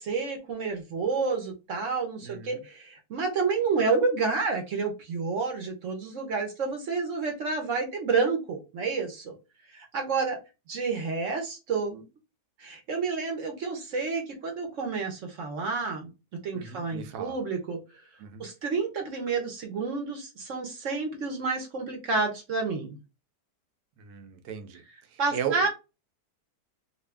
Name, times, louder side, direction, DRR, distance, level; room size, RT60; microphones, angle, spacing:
voice 1, 0.0-9.3 9.7-10.4 10.7-12.0 12.6-16.1 16.4-17.8 18.4-23.0 25.2-25.7, right 4 dB, 55° right, 1.1 m, -29 dB
voice 2, 2.2-2.6 16.5-17.4 18.2-18.5 24.0-24.8 25.1-25.7, right 8 dB, 75° right, 1.2 m, -36 dB
2.8 x 2.6 x 3.3 m
omnidirectional pair, 1.7 m